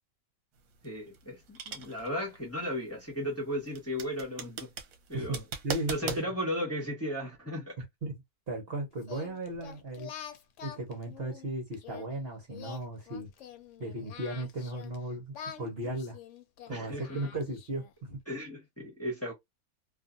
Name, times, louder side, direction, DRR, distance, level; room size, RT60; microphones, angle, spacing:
sound 1, 0.6-6.2, right 7 dB, 70° right, 1.1 m, -40 dB
voice 1, 0.8-4.7 5.1-5.4 5.9-7.8 16.7-17.2 18.3-19.3, equal, 10° left, 1.1 m, -35 dB
voice 2, 5.1-6.2 7.8-8.2 8.5-10.1 10.6-13.3 13.8-16.2 16.7-18.2, right 1 dB, 45° right, 1.1 m, -36 dB
Singing, 9.0-12.1 12.5-15.0 15.3-17.9, left 8 dB, 65° left, 0.9 m, -47 dB
2.6 x 2.5 x 2.4 m
omnidirectional pair, 1.5 m